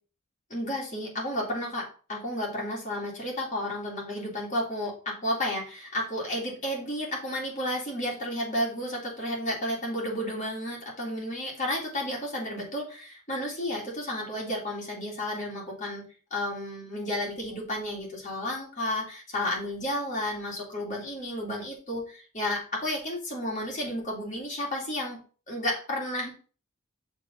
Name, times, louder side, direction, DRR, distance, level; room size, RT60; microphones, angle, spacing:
voice 1, 0.5-16.0 16.3-25.2 25.5-26.3, left 1 dB, 35° left, -3 dB, 2.4 m, -32 dB
6.4 x 3.6 x 5.1 m, 0.38 s
head